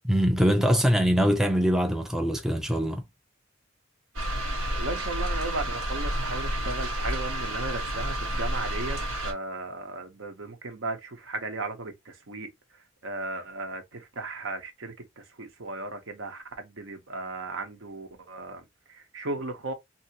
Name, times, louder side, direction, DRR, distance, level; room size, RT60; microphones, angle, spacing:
voice 1, 0.0-3.0, equal, ahead, 0.4 m, -23 dB
sound 1, 4.2-9.3, right 1 dB, 90° right, 1.1 m, -30 dB
voice 2, 4.7-12.5 13.0-19.7, right 2 dB, 70° right, 0.9 m, -36 dB
2.8 x 2.7 x 2.8 m
head